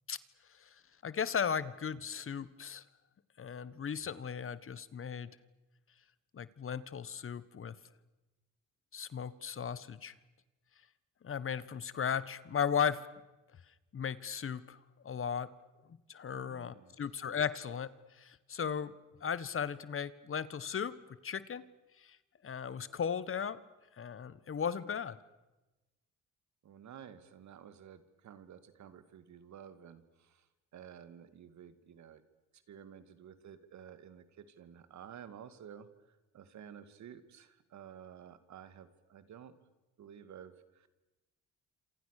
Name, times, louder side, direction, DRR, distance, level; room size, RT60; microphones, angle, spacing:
voice 1, 1.0-2.8 3.4-5.3 6.3-7.7 8.9-10.1 11.2-13.0 13.9-14.8 15.0-15.5 16.1-17.9 18.2-18.9 19.2-20.9 21.2-21.6 22.0-22.2 22.4-23.6 24.0-25.2, left 7 dB, 45° left, 16 dB, 1.5 m, -36 dB
voice 2, 16.3-17.0 26.6-32.2 32.5-39.5 40.0-40.9, right 8 dB, 70° right, 12 dB, 2.3 m, -52 dB
28.0 x 27.0 x 6.7 m, 1.1 s
cardioid pair, 90°, 30 cm